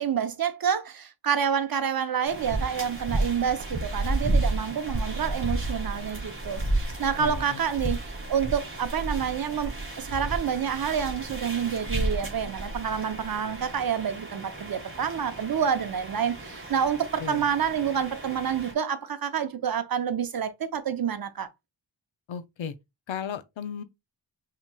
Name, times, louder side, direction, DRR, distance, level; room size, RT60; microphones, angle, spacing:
voice 1, 0.0-8.0 8.3-21.5, right 7 dB, 50° right, 0.7 m, -28 dB
sound 1, 2.3-18.7, right 2 dB, 30° right, 1.7 m, -32 dB
voice 2, 7.2-7.6 17.2-17.5 22.3-22.7 23.1-23.8, left 7 dB, 80° left, 0.7 m, -35 dB
5.7 x 3.0 x 2.2 m
wide cardioid pair, 80°, 46 cm